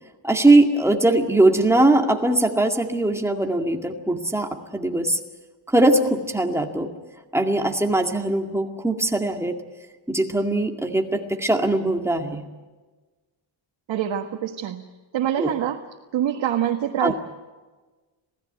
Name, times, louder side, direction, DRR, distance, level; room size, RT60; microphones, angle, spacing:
voice 1, 0.2-5.2 5.7-6.9 7.3-9.6 10.1-12.4 15.4-15.5 17.0-17.1, right 2 dB, 5° right, 3 dB, 2.1 m, -20 dB
voice 2, 13.9-14.9 15.1-15.8 16.1-17.1, right 10 dB, 80° right, 3 dB, 1.7 m, -25 dB
27.0 x 17.5 x 9.2 m, 1.3 s
wide cardioid pair, 160°, 46 cm